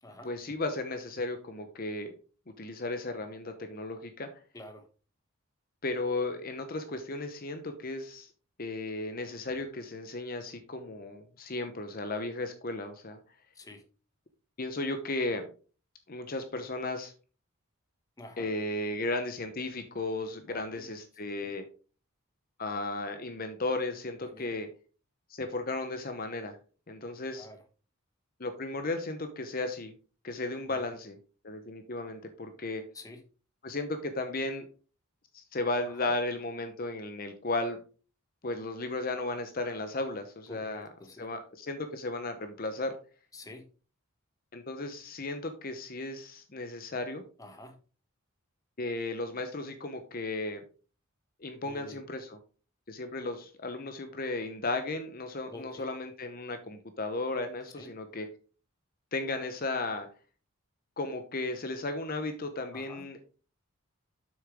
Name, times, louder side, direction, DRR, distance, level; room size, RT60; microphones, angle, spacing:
voice 1, 0.2-2.1 2.6-4.3 5.8-8.3 8.6-13.2 14.6-15.5 16.1-17.1 18.4-21.7 22.6-24.7 25.3-26.6 26.9-27.5 28.4-29.9 30.2-31.2 31.4-32.8 33.6-34.7 35.3-37.8 38.4-40.9 41.2-43.0 44.5-47.2 48.8-50.6 51.4-52.4 52.9-58.3 59.1-60.1 61.0-63.2, left 2 dB, 40° left, 8 dB, 0.8 m, -35 dB
voice 2, 4.5-4.9 13.5-13.8 18.2-18.5 20.5-20.8 24.2-24.5 27.3-27.6 30.7-30.9 32.9-33.2 36.0-36.1 40.5-41.3 43.3-43.6 47.4-47.8 51.6-52.0 55.5-55.9 57.8-57.9 62.7-63.0, left 1 dB, 15° left, 6 dB, 1.1 m, -48 dB
7.5 x 6.3 x 3.6 m, 0.37 s
head